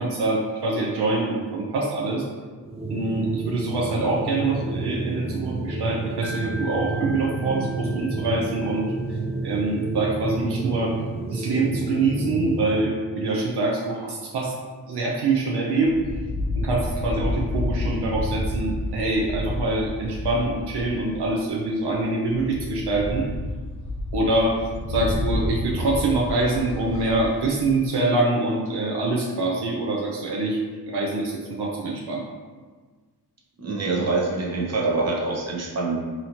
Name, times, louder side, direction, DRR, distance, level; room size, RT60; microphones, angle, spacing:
voice 1, 0.0-2.2 2.9-8.9 9.4-10.9 11.3-14.5 14.9-15.9 16.5-23.3 24.1-24.5 24.9-30.6 30.9-32.2, right 2 dB, 75° right, -2 dB, 0.6 m, -25 dB
sound 1, 2.6-12.9, right 3 dB, 15° right, 0.4 m, -30 dB
Wind chime, 6.2-9.3, right 1 dB, 5° left, 0.8 m, -40 dB
sound 2, 15.8-21.4 21.9-22.0 22.3-27.8, left 1 dB, 45° left, 0.8 m, -30 dB
voice 2, 33.6-36.0, right 3 dB, 40° right, -2 dB, 0.8 m, -25 dB
4.0 x 2.9 x 2.8 m, 1.4 s
wide cardioid pair, 85°, 41 cm